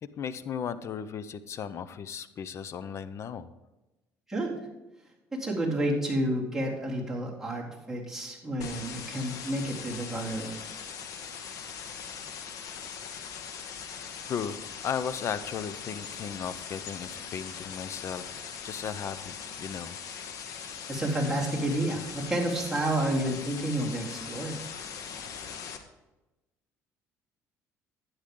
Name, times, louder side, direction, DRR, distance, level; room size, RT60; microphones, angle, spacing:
voice 1, 0.0-3.5 14.3-18.3 18.6-20.0, left 7 dB, 50° left, 14 dB, 0.8 m, -36 dB
voice 2, 5.3-10.5 20.9-24.6, right 1 dB, 5° right, -5 dB, 3.7 m, -30 dB
sound 1, 8.6-25.8, left 7 dB, 65° left, 1.5 m, -41 dB
12.0 x 9.7 x 3.9 m, 1.0 s
cardioid pair, 100°, 6 cm